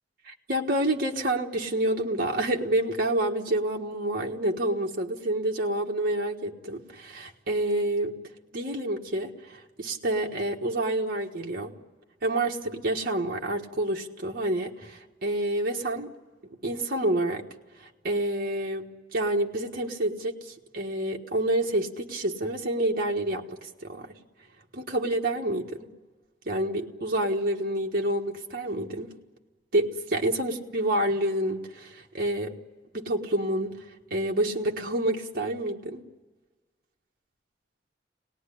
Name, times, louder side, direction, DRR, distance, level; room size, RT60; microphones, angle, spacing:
voice 1, 0.2-8.2 8.5-11.7 12.2-16.1 16.6-17.4 17.8-18.9 19.1-24.1 24.7-25.9 26.4-29.1 29.7-32.5 32.9-33.8 34.1-36.0, right 1 dB, 55° right, 0 dB, 1.5 m, -28 dB
25.5 x 19.0 x 10.0 m, 1.4 s
head